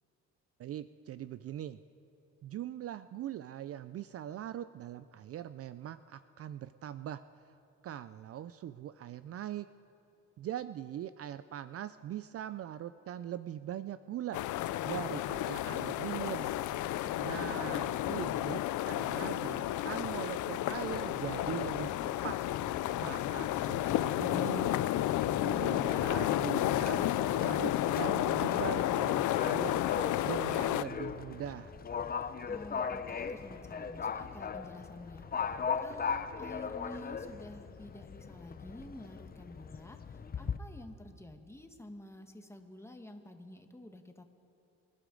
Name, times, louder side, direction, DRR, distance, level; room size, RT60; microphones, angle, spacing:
voice 1, 0.6-1.8 2.4-7.2 7.8-9.7 10.4-14.4 14.8-16.5 17.2-18.6 18.8-21.9 22.2-22.4 23.0-24.8 25.4-29.8 30.2-31.7, right 11 dB, 50° right, 14 dB, 0.4 m, -41 dB
sound 1, 14.3-30.8, left 14 dB, 75° left, 0.5 m, -32 dB
Livestock farm animals working animals, 21.2-40.6, left 6 dB, 30° left, 0.6 m, -40 dB
voice 2, 32.1-44.2, left 1 dB, 10° left, 5 dB, 1.3 m, -50 dB
25.5 x 12.0 x 3.8 m, 2.6 s
cardioid pair, 90°, 30 cm